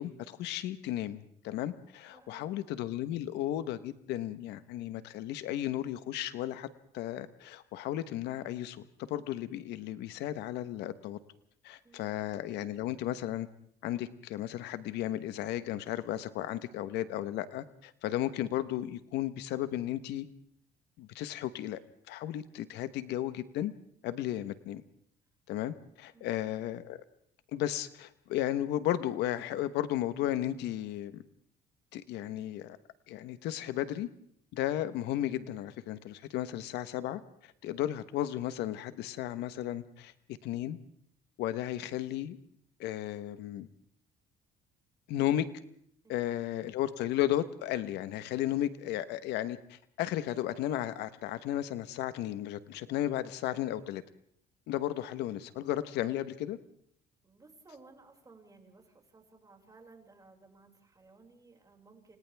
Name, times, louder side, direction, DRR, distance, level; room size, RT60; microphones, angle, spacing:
voice 1, 0.0-6.7 6.9-11.2 11.6-13.5 13.8-20.3 21.0-21.8 22.1-23.7 24.0-24.8 25.5-27.0 27.5-31.2 31.9-32.8 33.1-34.1 34.5-40.1 40.4-40.8 41.4-42.4 42.8-43.7 45.1-45.5 46.1-54.0 54.7-56.6, left 13 dB, 85° left, 12 dB, 1.2 m, -34 dB
voice 2, 2.1-2.5 11.8-12.3 26.1-26.4 46.0-46.4 57.2-62.2, right 3 dB, 20° right, 1 dB, 5.8 m, -58 dB
29.5 x 27.5 x 3.5 m, 0.67 s
cardioid pair, 110°, 17 cm